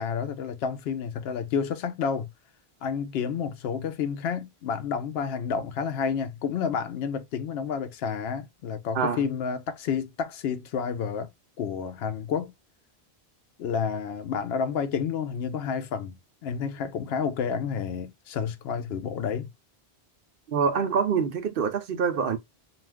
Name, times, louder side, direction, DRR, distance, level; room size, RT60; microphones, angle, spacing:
voice 1, 0.0-2.3 2.8-11.3 11.6-12.5 13.6-19.5, left 6 dB, 75° left, 0.8 m, -30 dB
voice 2, 20.5-22.4, right 6 dB, 65° right, 0.7 m, -25 dB
2.5 x 2.3 x 3.3 m
omnidirectional pair, 1.1 m